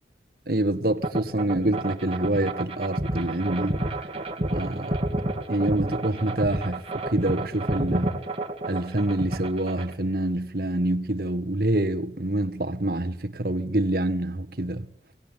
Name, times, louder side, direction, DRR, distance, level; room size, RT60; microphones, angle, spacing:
voice 1, 0.5-3.8 4.5-5.0 5.5-8.2 8.6-14.9, right 1 dB, 55° right, 1.4 m, -26 dB
sound 1, 1.0-9.9, right 1 dB, 35° right, 2.5 m, -29 dB
25.0 x 18.5 x 9.9 m
head